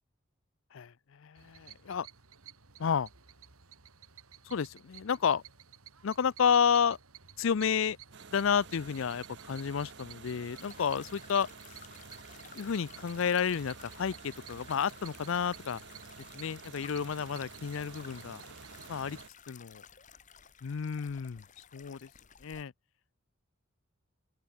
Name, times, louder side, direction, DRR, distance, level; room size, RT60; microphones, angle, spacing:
voice 1, 0.7-2.1 2.8-3.1 4.5-5.4 6.0-7.0 7.4-8.0 8.3-11.5 12.5-15.8 16.3-18.4 18.9-19.2 19.5-19.8 20.6-21.4 21.7-22.1 22.4-22.7, left 7 dB, 65° left, 0.5 m, -31 dB
sound 1, 1.3-19.2, right 7 dB, 90° right, 2.6 m, -54 dB
sound 2, 8.1-19.3, right 5 dB, 55° right, 1.0 m, -51 dB
sound 3, 10.5-22.6, left 7 dB, 35° left, 1.6 m, -55 dB
open air
head